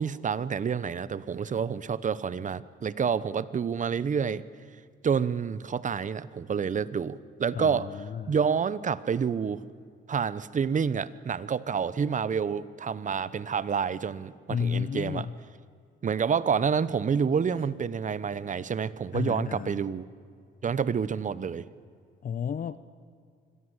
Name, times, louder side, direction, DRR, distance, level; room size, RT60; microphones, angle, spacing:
voice 1, 0.0-4.4 5.0-7.9 8.3-9.6 10.1-15.3 16.0-20.1 20.6-21.7, right 6 dB, 40° right, 17 dB, 0.9 m, -28 dB
voice 2, 7.5-8.3 14.5-15.4 19.1-19.8 22.2-22.8, left 7 dB, 45° left, 14 dB, 0.7 m, -32 dB
25.0 x 17.0 x 8.1 m, 2.2 s
cardioid pair, 90°, 20 cm